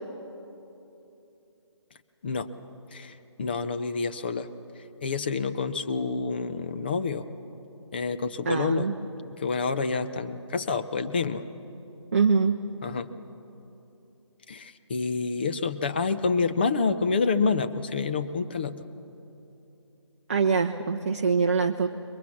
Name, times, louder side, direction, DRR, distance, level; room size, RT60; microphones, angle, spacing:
voice 1, 2.9-4.5 5.0-7.2 7.9-8.9 9.3-11.4 12.8-13.1 14.5-18.8, left 4 dB, 20° left, 9 dB, 0.5 m, -28 dB
voice 2, 8.4-8.9 12.1-12.6 20.3-21.9, right 5 dB, 30° right, 3 dB, 0.6 m, -23 dB
26.0 x 22.5 x 7.2 m, 3.0 s
figure-of-eight pair, 155°, 16 cm